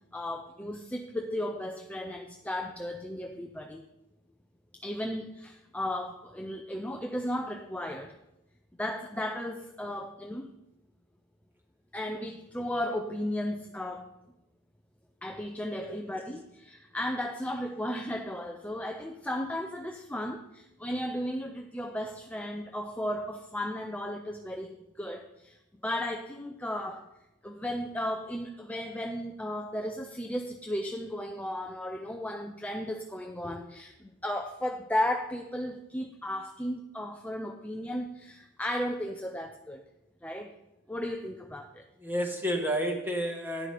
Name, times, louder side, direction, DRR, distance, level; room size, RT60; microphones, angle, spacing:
voice 1, 0.1-3.8 4.8-8.2 8.8-10.5 11.9-14.1 15.2-27.0 27.4-39.8 40.2-40.5 40.9-41.8, left 1 dB, 5° left, 4 dB, 0.5 m, -35 dB
voice 2, 42.0-43.7, equal, 10° right, 2 dB, 1.3 m, -31 dB
11.0 x 10.0 x 3.3 m, 0.91 s
head